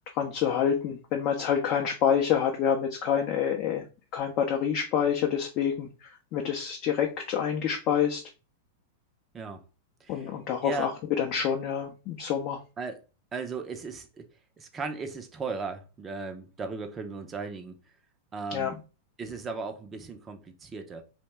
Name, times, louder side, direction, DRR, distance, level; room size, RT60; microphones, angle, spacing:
voice 1, 0.1-3.8 4.1-8.2 10.1-10.9 11.2-12.6 18.5-18.7, left 8 dB, 45° left, 0.5 m, -27 dB
voice 2, 13.3-14.3 14.6-17.7 18.3-18.8 19.2-21.0, right 4 dB, 25° right, 0.4 m, -36 dB
2.8 x 2.1 x 3.2 m
hypercardioid pair, 105°, 0 cm